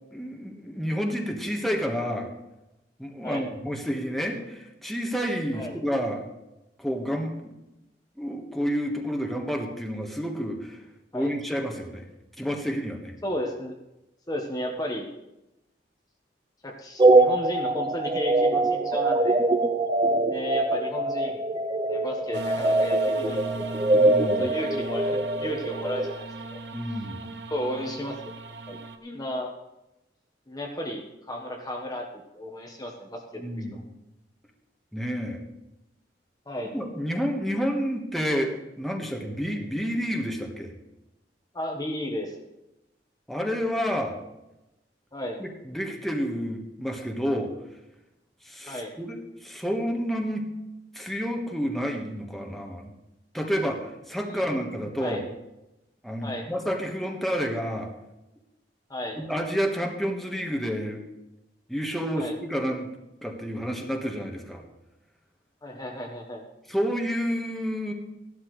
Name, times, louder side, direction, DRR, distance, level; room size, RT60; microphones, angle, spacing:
voice 1, 0.0-2.3 3.0-6.2 6.8-7.5 8.2-10.8 11.1-12.0 12.4-13.1 23.9-24.4 26.7-27.3 33.3-33.8 34.9-35.4 36.7-40.7 43.3-44.2 45.4-47.5 48.4-50.5 50.9-52.9 53.3-55.2 56.0-57.9 59.2-61.0 61.7-62.9 63.2-64.6 66.7-67.9, equal, ahead, 1 dB, 1.5 m, -29 dB
voice 2, 13.2-13.8 14.3-15.1 16.6-19.4 20.3-21.4 21.8-23.7 24.2-26.6 27.5-28.3 28.7-29.5 30.5-32.1 32.3-33.8 36.5-36.7 41.5-42.3 45.1-45.4 48.7-48.9 54.2-55.2 56.2-56.5 58.9-59.2 62.1-62.3 65.6-66.4, left 1 dB, 20° left, 1 dB, 1.2 m, -34 dB
sound 1, 17.0-26.1, right 2 dB, 25° right, 0.6 m, -23 dB
sound 2, 22.3-29.0, right 3 dB, 80° right, 1.1 m, -38 dB
15.5 x 12.0 x 3.2 m, 0.94 s
head